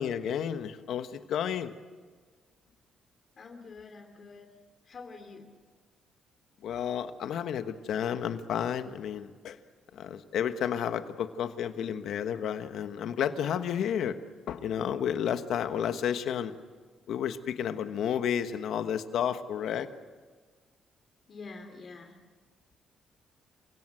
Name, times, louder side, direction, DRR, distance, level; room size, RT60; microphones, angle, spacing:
voice 1, 0.0-1.7 6.6-9.6 9.9-14.2 14.5-16.5 17.1-19.9, left 9 dB, 75° left, 9 dB, 1.3 m, -31 dB
voice 2, 3.4-4.5 4.8-5.5 21.3-22.2, left 4 dB, 50° left, 5 dB, 2.8 m, -46 dB
28.0 x 17.0 x 7.9 m, 1.5 s
cardioid pair, 90°, 0 cm